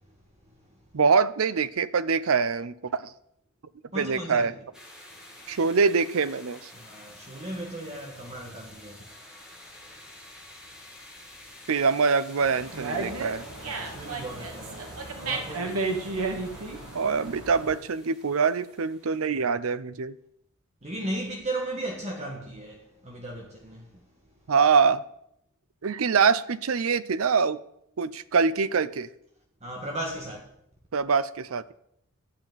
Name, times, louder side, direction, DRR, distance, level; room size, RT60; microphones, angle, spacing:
voice 1, 0.9-3.1 4.0-4.5 5.5-6.6 11.7-13.4 16.9-20.1 24.5-25.0 25.8-27.6 28.0-29.1 30.9-31.7, right 5 dB, 75° right, 0.6 m, -24 dB
voice 2, 3.9-4.5 6.7-9.1 13.5-15.8 20.8-23.8 29.6-30.4, right 1 dB, 30° right, 1.5 m, -36 dB
sound 1, 4.7-19.5, left 1 dB, 5° right, 2.2 m, -49 dB
Dog, 12.4-17.8, right 3 dB, 90° right, 2.0 m, -33 dB
12.0 x 5.8 x 9.1 m
head